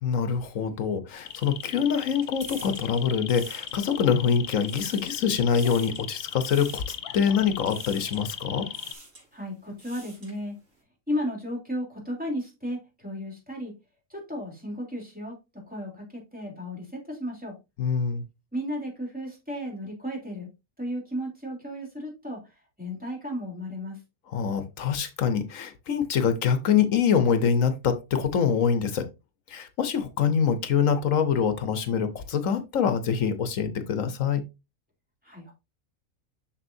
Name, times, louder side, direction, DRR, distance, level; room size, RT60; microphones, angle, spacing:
voice 1, 0.0-8.7 17.8-18.2 24.3-29.1 29.5-34.4, left 7 dB, 75° left, 1.3 m, -25 dB
sound 1, 1.1-8.9, left 9 dB, 60° left, 0.7 m, -38 dB
sound 2, 1.1-4.2 4.5-5.2 5.5-6.1 6.4-7.0 7.7-8.3 8.7-9.3 9.6-10.4, right 1 dB, 70° right, 4.5 m, -47 dB
voice 2, 9.3-10.6 11.1-13.7 14.1-17.6 18.5-20.5 20.8-22.5 22.8-24.0 35.2-35.5, equal, 5° right, 3.1 m, -34 dB
7.1 x 6.3 x 2.6 m
omnidirectional pair, 1.4 m